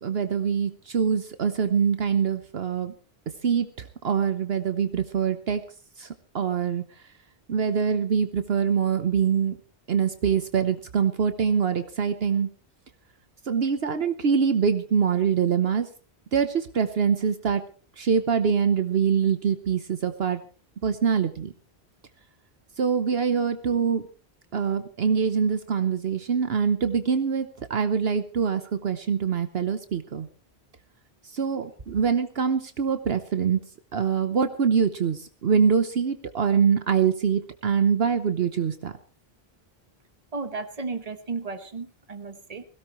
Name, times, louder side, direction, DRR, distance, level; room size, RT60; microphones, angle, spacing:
voice 1, 0.0-2.9 3.4-5.6 6.0-6.1 6.3-6.8 7.5-9.6 9.9-12.5 13.5-15.9 16.3-17.6 18.0-20.4 20.8-21.5 22.8-24.0 24.5-30.3 31.3-33.6 33.9-38.9, right 6 dB, 65° right, 1.1 m, -24 dB
voice 2, 40.3-42.6, right 4 dB, 35° right, 1.4 m, -34 dB
21.5 x 16.5 x 3.1 m
omnidirectional pair, 1.1 m